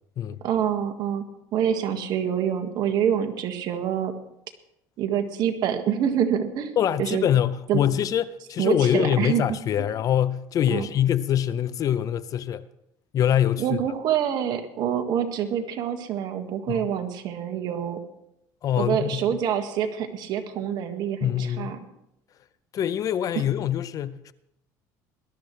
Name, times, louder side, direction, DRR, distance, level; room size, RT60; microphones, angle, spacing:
voice 1, 0.4-1.2 1.5-4.1 5.0-7.3 7.7-7.8 8.6-9.9 10.7-10.9 13.6-18.0 18.8-21.8, right 9 dB, 60° right, 1.7 m, -26 dB
voice 2, 6.8-12.6 13.1-13.8 16.7-16.9 18.6-19.2 21.2-21.8 22.7-24.3, left 10 dB, 45° left, 0.6 m, -24 dB
21.0 x 12.5 x 3.2 m
supercardioid pair, 105°, 8 cm